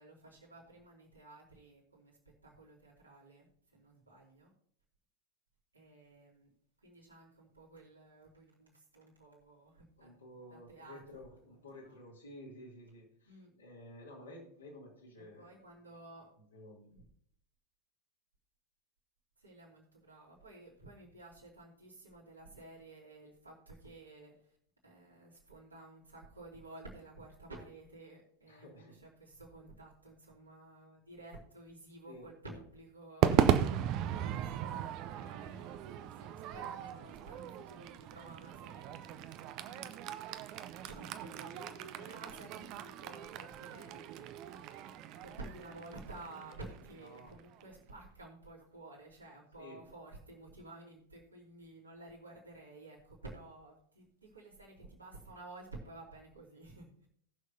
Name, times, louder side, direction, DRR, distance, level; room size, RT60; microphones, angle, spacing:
voice 1, 0.0-4.5 5.7-6.5 6.8-10.1 10.5-12.0 13.3-13.6 15.2-16.3 16.9-17.1 19.4-24.3 24.8-39.4 39.8-39.9 40.5-44.7 45.2-57.1, right 2 dB, 80° right, -5 dB, 3.1 m, -53 dB
voice 2, 10.0-15.6 16.5-16.9 28.5-29.0 32.1-32.3 47.0-47.4 49.6-49.8, left 1 dB, 75° left, -4 dB, 2.9 m, -52 dB
Crowd / Fireworks, 33.2-47.6, right 10 dB, 40° right, 0.6 m, -36 dB
19.0 x 6.5 x 2.7 m, 0.67 s
figure-of-eight pair, 90°, 0 cm